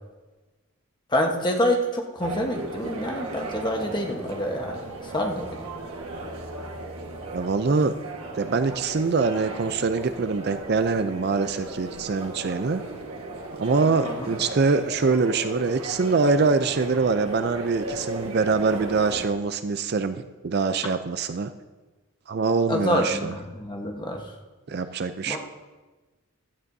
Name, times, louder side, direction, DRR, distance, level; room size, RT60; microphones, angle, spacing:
voice 1, 1.1-5.6 14.0-14.3 22.7-24.2 25.3-25.4, equal, 20° left, 2 dB, 1.1 m, -27 dB
sound 1, 2.2-19.3, right 2 dB, 90° right, 1.5 m, -36 dB
voice 2, 7.3-7.9 8.4-12.9 13.6-21.5 22.3-23.3 24.7-25.4, right 4 dB, 45° right, 10 dB, 0.4 m, -24 dB
16.0 x 12.5 x 2.7 m, 1.2 s
head